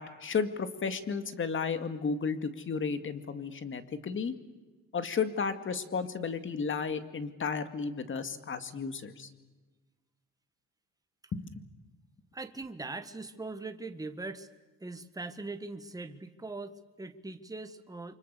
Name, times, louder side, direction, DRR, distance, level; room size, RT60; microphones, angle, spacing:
voice 1, 0.0-4.3 4.9-9.3 11.3-11.4, left 5 dB, 40° left, 10 dB, 2.2 m, -33 dB
voice 2, 12.3-14.5 14.8-18.2, right 3 dB, 10° right, 9 dB, 1.6 m, -41 dB
29.5 x 24.5 x 6.9 m, 1.2 s
cardioid pair, 105°, 29 cm